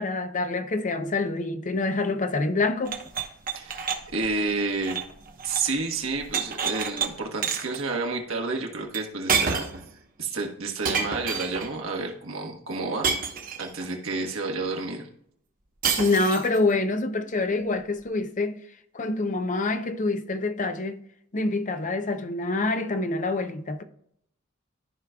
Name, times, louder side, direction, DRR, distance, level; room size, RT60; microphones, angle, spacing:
voice 1, 0.0-3.0 16.0-21.0 21.3-23.8, left 3 dB, 40° left, 0.6 m, -26 dB
sound 1, 2.8-5.8 6.0-7.1 7.4-7.8 8.9-9.0 9.3-9.9 10.8-11.7 13.0-13.9 15.8-16.6, right 5 dB, 45° right, 1.0 m, -29 dB
voice 2, 3.5-5.0 5.4-9.8 10.2-13.1 13.5-15.1, right 3 dB, 75° right, 1.4 m, -30 dB
13.5 x 5.1 x 2.3 m
head